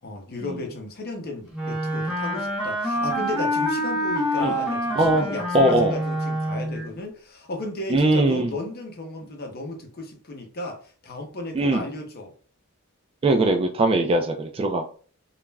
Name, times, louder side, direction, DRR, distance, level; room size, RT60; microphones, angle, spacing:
voice 1, 0.0-12.3, left 2 dB, 45° left, 2 dB, 0.7 m, -34 dB
Wind instrument woodwind instrument, 1.5-6.9, equal, ahead, 0.8 m, -26 dB
voice 2, 5.5-6.0 7.9-8.5 11.5-11.8 13.2-15.0, right 2 dB, 25° right, 5 dB, 0.3 m, -21 dB
2.3 x 2.1 x 3.2 m, 0.41 s
head